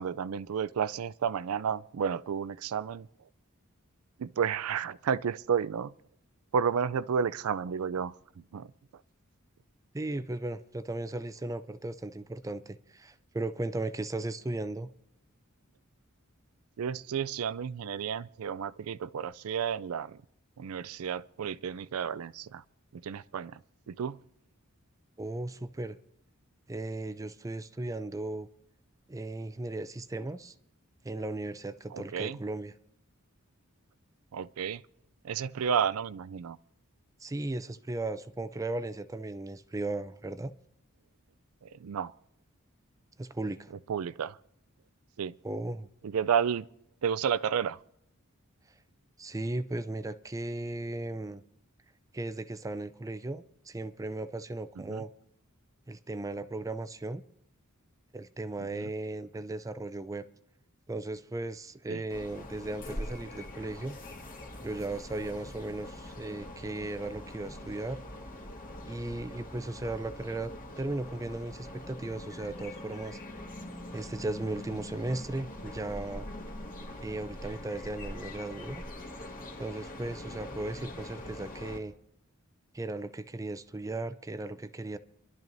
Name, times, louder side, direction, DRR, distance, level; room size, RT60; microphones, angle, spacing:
voice 1, 0.0-3.1 4.2-5.9 6.5-8.7 16.8-20.2 20.6-22.6 22.9-23.6 23.9-24.2 31.9-32.4 34.3-34.8 35.2-36.6 41.6-42.1 43.9-44.4 45.2-45.3 46.0-46.7 47.0-47.8 54.8-55.0 58.7-58.9 61.9-62.0, right 7 dB, 80° right, 0.4 m, -31 dB
voice 2, 9.9-14.9 25.2-26.0 26.7-28.5 29.1-30.5 31.0-32.7 37.2-40.5 43.2-43.7 45.4-45.9 49.2-51.4 52.1-55.1 55.9-57.2 58.1-60.2 60.9-63.9 64.6-68.0 68.9-73.2 73.9-76.3 77.0-78.8 79.6-81.9 82.7-85.0, right 2 dB, 15° right, 0.4 m, -36 dB
sound 1, 62.1-81.8, left 1 dB, 40° left, 1.9 m, -43 dB
26.0 x 12.0 x 2.6 m
head